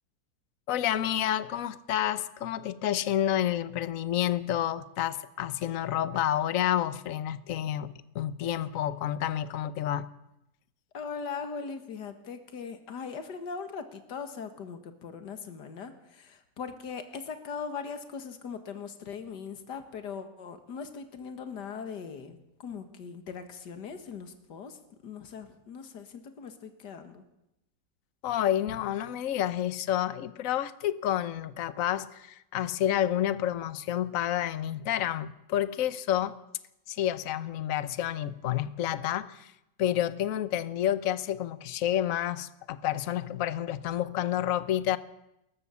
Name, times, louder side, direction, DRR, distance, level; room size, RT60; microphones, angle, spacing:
voice 1, 0.7-10.1 28.2-36.4 36.9-39.5 39.8-45.0, left 11 dB, 55° left, 1.2 m, -29 dB
voice 2, 10.9-27.2, left 6 dB, 75° left, 2.2 m, -40 dB
27.0 x 14.5 x 7.1 m
omnidirectional pair, 1.9 m